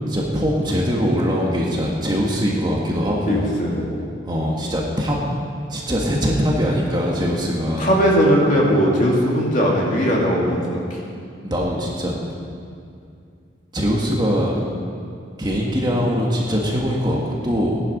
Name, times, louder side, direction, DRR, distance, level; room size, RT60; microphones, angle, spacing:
voice 1, 0.1-3.5 4.3-5.2 5.7-7.9 11.4-12.2 13.7-14.6 15.4-17.8, equal, 20° right, -3 dB, 1.6 m, -22 dB
voice 2, 3.3-3.9 7.8-11.0, equal, 40° left, -4 dB, 2.9 m, -19 dB
17.5 x 11.0 x 5.4 m, 2.3 s
head